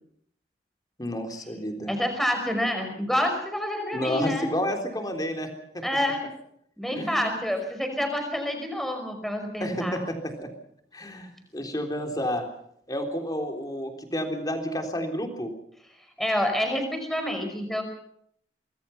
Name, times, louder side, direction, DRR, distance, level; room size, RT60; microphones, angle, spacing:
voice 1, 1.0-1.9 3.9-5.5 5.7-5.8 6.9-7.3 9.6-10.5 10.9-12.4 12.9-15.5, equal, 20° left, 4 dB, 3.6 m, -30 dB
voice 2, 1.9-4.5 5.8-6.2 6.8-10.0 16.2-17.8, left 1 dB, ahead, 5 dB, 5.3 m, -28 dB
25.0 x 21.5 x 5.8 m, 0.69 s
head